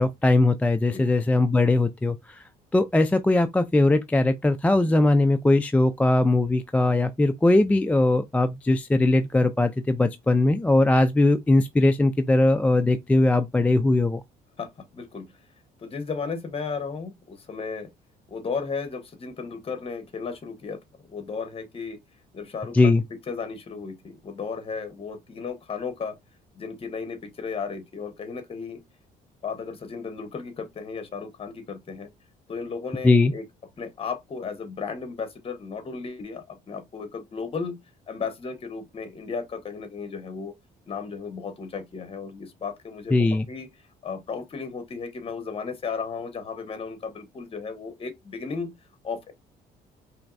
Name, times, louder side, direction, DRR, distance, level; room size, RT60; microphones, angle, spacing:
voice 1, 0.0-2.4 2.7-14.2 22.7-23.0 33.0-33.3 43.1-43.5, left 2 dB, 10° left, 0.3 m, -20 dB
voice 2, 14.6-15.3 15.8-17.9 18.3-20.8 21.1-22.0 22.3-22.9 23.3-26.2 26.5-28.8 29.4-32.1 32.5-33.4 33.8-37.8 38.1-40.5 40.9-43.7 44.0-48.7 49.0-49.3, left 5 dB, 35° left, 1.1 m, -34 dB
4.4 x 3.1 x 2.5 m
cardioid pair, 110°, 17 cm